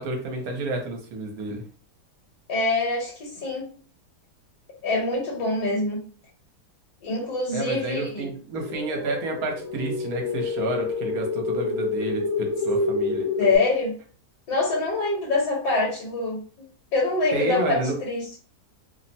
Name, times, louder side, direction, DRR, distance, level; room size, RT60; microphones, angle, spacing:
voice 1, 0.0-1.6 7.5-13.5 17.3-17.9, right 2 dB, 70° right, 2 dB, 1.1 m, -30 dB
voice 2, 2.5-3.7 4.8-6.0 7.0-8.3 13.4-13.9 14.5-16.7 16.9-17.7 18.0-18.4, left 3 dB, 75° left, -4 dB, 1.5 m, -25 dB
sound 1, 8.6-13.6, left 3 dB, 55° left, 0.8 m, -28 dB
3.1 x 2.0 x 2.6 m, 0.42 s
omnidirectional pair, 1.8 m